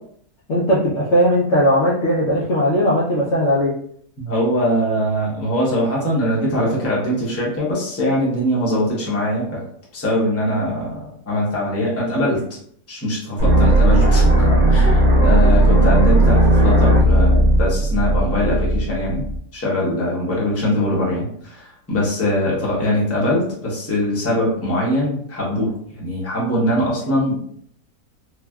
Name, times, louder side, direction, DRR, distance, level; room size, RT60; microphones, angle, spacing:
voice 1, 0.5-3.7, equal, 65° left, -6 dB, 0.7 m, -18 dB
voice 2, 4.2-9.6 9.9-12.4 12.9-19.2 19.5-27.4, left 1 dB, 15° left, -5 dB, 0.6 m, -22 dB
sound 1, 13.4-19.4, right 1 dB, 55° right, 1.0 m, -15 dB
3.3 x 2.3 x 2.2 m, 0.65 s
omnidirectional pair, 1.6 m